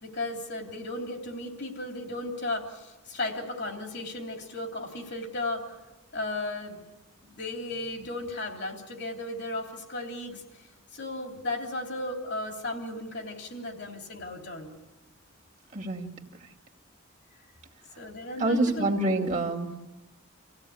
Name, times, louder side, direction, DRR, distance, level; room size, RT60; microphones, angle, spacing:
voice 1, 0.0-5.7 6.1-6.8 7.3-10.7 10.9-14.7 18.0-18.9 19.1-19.2, left 2 dB, 55° left, 2 dB, 3.2 m, -35 dB
voice 2, 15.7-16.1 16.4-16.5 18.4-19.7, right 2 dB, 35° right, 0 dB, 2.4 m, -27 dB
27.0 x 16.5 x 8.6 m, 1.1 s
head